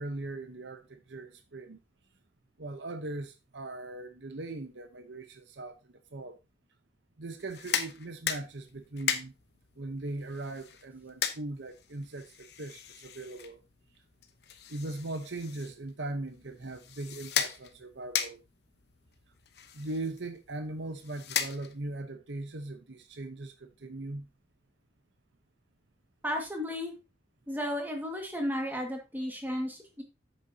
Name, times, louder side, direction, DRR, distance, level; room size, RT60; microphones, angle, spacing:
voice 1, 0.0-1.8 2.6-5.8 6.1-6.4 7.2-9.3 9.8-13.6 14.7-18.4 19.7-24.3, right 2 dB, 85° right, 0.9 m, -39 dB
sound 1, 7.4-22.0, left 8 dB, 65° left, 0.9 m, -38 dB
voice 2, 26.2-26.9 27.5-30.0, equal, 10° right, 1.8 m, -33 dB
8.5 x 8.0 x 2.8 m
head